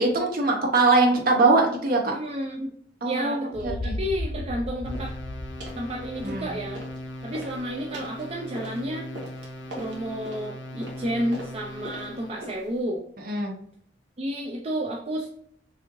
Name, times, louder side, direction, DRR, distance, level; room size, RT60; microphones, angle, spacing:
voice 1, 0.0-2.1 3.0-3.9 6.2-6.6 13.2-13.5, right 3 dB, 55° right, 1 dB, 1.0 m, -22 dB
voice 2, 2.1-2.7 3.0-5.1 5.7-6.8 7.2-9.1 9.8-13.0 14.2-15.3, equal, 35° right, -2 dB, 0.5 m, -31 dB
sound 1, 3.5-7.4, left 1 dB, 35° left, 0.4 m, -35 dB
sound 2, 4.8-12.4, left 1 dB, 75° left, 0.6 m, -39 dB
sound 3, 4.9-5.2 5.6-5.8 6.2-7.0 7.3-12.8, right 1 dB, 75° right, 1.4 m, -42 dB
6.2 x 2.6 x 3.0 m, 0.62 s
head